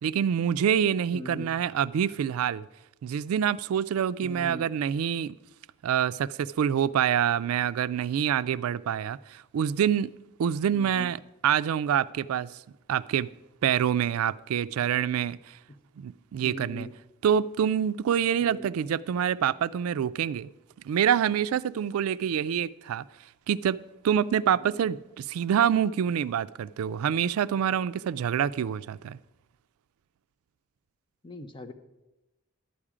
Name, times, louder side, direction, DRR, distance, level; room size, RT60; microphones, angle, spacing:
voice 1, 0.0-2.6 3.0-5.4 5.8-10.1 10.4-12.5 12.9-13.3 13.6-15.6 16.0-16.9 17.2-20.5 20.8-23.0 23.5-23.8 24.0-29.2, right 8 dB, 85° right, 0.3 m, -26 dB
voice 2, 1.1-1.5 4.2-4.6 10.6-11.1 16.4-16.9 18.4-18.7 24.6-24.8 31.2-31.7, left 1 dB, 25° left, 0.7 m, -41 dB
11.5 x 8.7 x 4.9 m
head